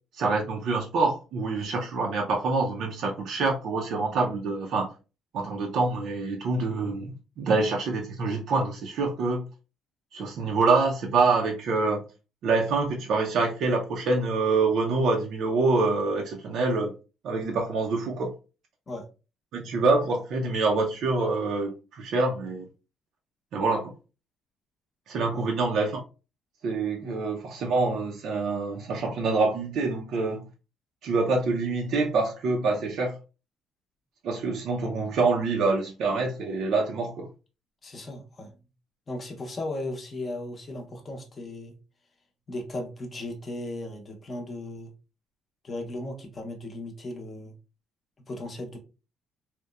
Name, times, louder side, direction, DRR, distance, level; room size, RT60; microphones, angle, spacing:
voice 1, 0.1-4.9 5.3-9.5 10.1-12.1 12.4-16.9 17.2-18.3 19.5-22.7 23.5-23.9 25.1-26.0 26.6-30.4 31.0-33.2 34.2-37.3, right 3 dB, 65° right, 0.4 m, -26 dB
voice 2, 37.8-38.5 39.1-41.7 42.5-44.9 45.6-47.5 48.3-48.8, left 1 dB, 30° left, 0.6 m, -36 dB
2.8 x 2.0 x 2.2 m
cardioid pair, 130°, 0 cm